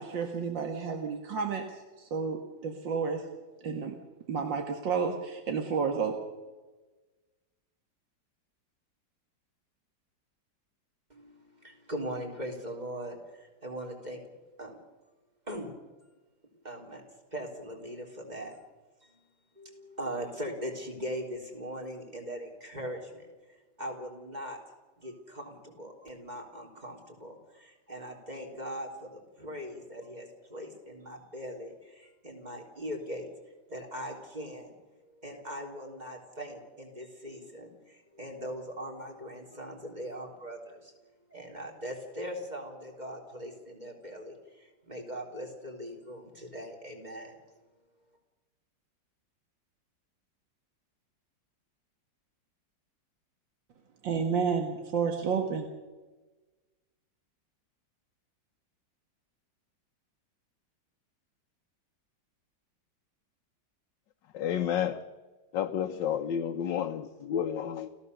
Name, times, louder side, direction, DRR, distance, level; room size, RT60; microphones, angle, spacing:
voice 1, 0.0-3.2 3.6-3.9 4.3-6.2 54.0-55.7, right 5 dB, 80° right, 4 dB, 2.4 m, -31 dB
voice 2, 11.1-14.2 14.6-14.8 15.5-15.7 16.6-18.6 19.0-19.2 19.6-23.3 23.8-24.6 25.0-33.3 33.7-34.7 35.2-40.9 41.3-47.4, equal, 20° right, 1 dB, 3.9 m, -40 dB
voice 3, 64.3-65.0 65.5-67.9, left 9 dB, 80° left, 5 dB, 1.6 m, -30 dB
29.5 x 15.0 x 6.9 m, 1.2 s
omnidirectional pair, 2.0 m